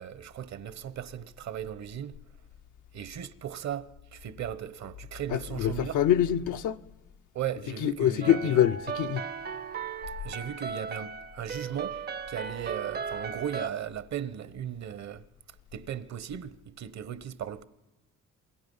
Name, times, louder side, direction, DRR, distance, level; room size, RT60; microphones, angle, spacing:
voice 1, 0.0-2.2 2.9-6.0 7.3-8.6 10.2-15.2 15.7-17.6, right 10 dB, 65° right, 1.1 m, -37 dB
voice 2, 5.3-6.8 7.8-9.2, left 11 dB, 80° left, 0.8 m, -25 dB
sound 1, 8.2-13.7, right 6 dB, 35° right, 0.6 m, -37 dB
27.5 x 21.5 x 5.5 m
cardioid pair, 90°, 30 cm